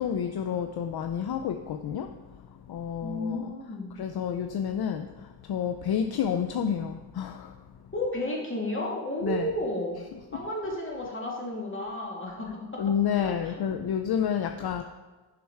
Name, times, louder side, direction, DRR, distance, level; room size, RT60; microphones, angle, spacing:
voice 1, 0.0-2.1 2.7-3.5 3.9-7.6 9.2-9.5 10.0-10.4 12.8-14.8, left 8 dB, 60° left, 7 dB, 0.5 m, -30 dB
voice 2, 3.0-3.9 7.9-10.0 10.3-12.8 13.1-13.6, left 1 dB, 30° left, -2 dB, 2.3 m, -32 dB
7.2 x 5.9 x 4.7 m, 1.3 s
cardioid pair, 60°, 43 cm